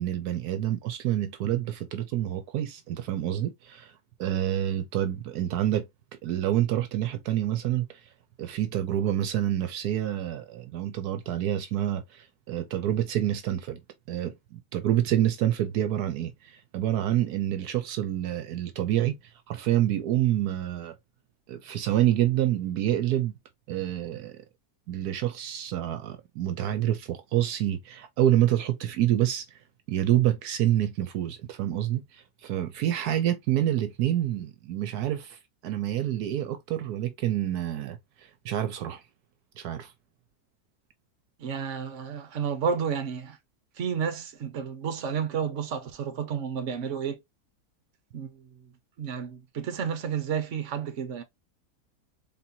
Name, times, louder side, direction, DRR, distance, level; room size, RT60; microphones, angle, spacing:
voice 1, 0.0-3.9 4.2-5.9 6.2-7.9 8.4-13.8 14.1-19.2 19.5-20.9 21.5-23.3 23.7-24.4 24.9-29.6 29.9-39.0 39.6-39.9, right 12 dB, 80° right, 1.2 m, -27 dB
voice 2, 41.4-43.4 43.8-47.2 48.1-48.5 49.0-51.2, right 7 dB, 55° right, 1.2 m, -31 dB
4.3 x 3.6 x 2.7 m
omnidirectional pair, 1.7 m